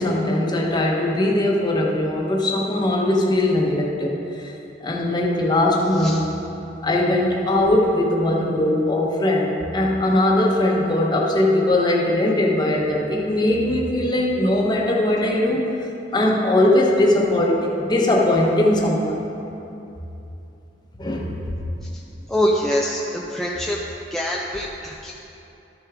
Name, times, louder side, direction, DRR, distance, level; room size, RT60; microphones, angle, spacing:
voice 1, 0.0-4.5 4.8-6.3 6.8-15.7 16.1-19.2 21.0-21.6, left 1 dB, 25° left, -2 dB, 1.0 m, -20 dB
voice 2, 22.3-23.8 24.1-25.1, equal, 5° left, -3 dB, 0.5 m, -24 dB
12.5 x 6.6 x 3.6 m, 2.9 s
head